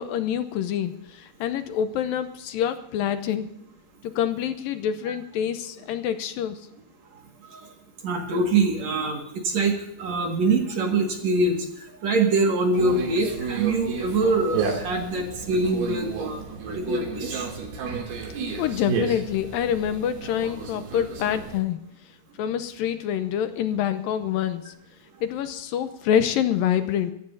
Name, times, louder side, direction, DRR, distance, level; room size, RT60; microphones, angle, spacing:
voice 1, 0.0-3.5 4.0-6.6 18.6-21.8 22.4-24.7 25.2-27.1, left 9 dB, 80° left, 10 dB, 2.3 m, -26 dB
voice 2, 8.0-17.5, right 3 dB, 50° right, 2 dB, 2.8 m, -24 dB
Conversation, 12.7-21.6, right 5 dB, 85° right, 4.7 m, -32 dB
25.5 x 15.0 x 2.7 m, 0.78 s
omnidirectional pair, 4.3 m